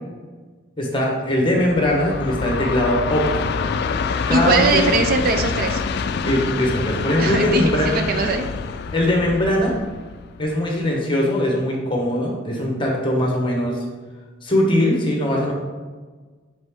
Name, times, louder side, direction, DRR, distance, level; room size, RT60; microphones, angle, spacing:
voice 1, 0.8-3.7 4.3-4.9 6.2-7.9 8.9-9.7 10.4-13.8 14.4-15.5, left 1 dB, 25° left, -1 dB, 1.2 m, -21 dB
Train, 1.6-10.8, left 5 dB, 60° left, 0.3 m, -26 dB
voice 2, 4.3-5.8 7.2-8.5, right 3 dB, 50° right, 6 dB, 0.5 m, -20 dB
5.3 x 5.2 x 3.6 m, 1.4 s
head